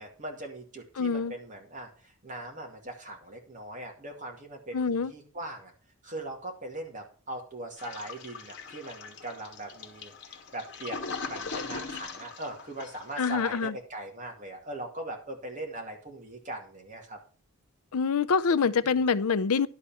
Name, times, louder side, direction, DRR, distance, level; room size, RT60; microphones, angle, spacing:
voice 1, 0.0-5.7 6.0-17.2 18.7-18.8, right 1 dB, 35° right, 2.2 m, -40 dB
voice 2, 1.0-1.3 4.7-5.1 13.2-13.7 17.9-19.7, left 5 dB, 80° left, 0.5 m, -25 dB
Toilet flush, 7.8-13.5, left 4 dB, 50° left, 1.4 m, -40 dB
11.5 x 4.2 x 7.0 m
head